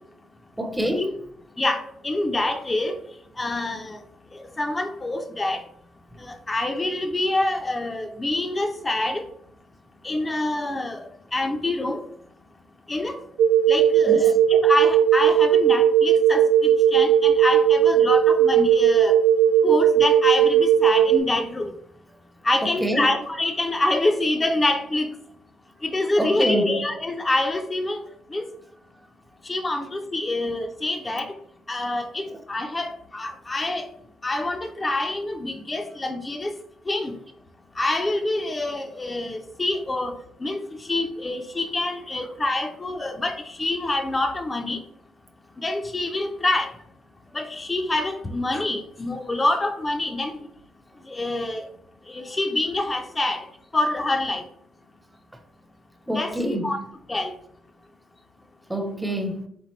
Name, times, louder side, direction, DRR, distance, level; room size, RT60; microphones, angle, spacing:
voice 1, 0.6-1.2 14.0-14.4 22.6-23.1 26.2-26.8 32.3-32.4 56.1-56.8 58.7-59.5, equal, 10° right, 0.7 m, -27 dB
voice 2, 1.6-3.0 3.4-4.0 4.3-5.6 6.2-9.2 10.0-11.0 11.3-12.0 12.9-13.2 13.7-19.2 19.6-21.7 22.4-25.1 25.8-28.0 28.3-28.4 29.4-31.4 31.7-33.9 34.2-36.5 36.9-37.1 37.8-44.8 45.6-46.7 47.3-50.3 51.1-51.7 52.1-53.5 53.7-54.4 56.1-56.8 57.1-57.3, left 2 dB, 20° left, 0.5 m, -26 dB
sound 1, 13.4-21.2, right 9 dB, 80° right, 0.3 m, -17 dB
4.3 x 3.6 x 3.1 m
cardioid pair, 90°, 0 cm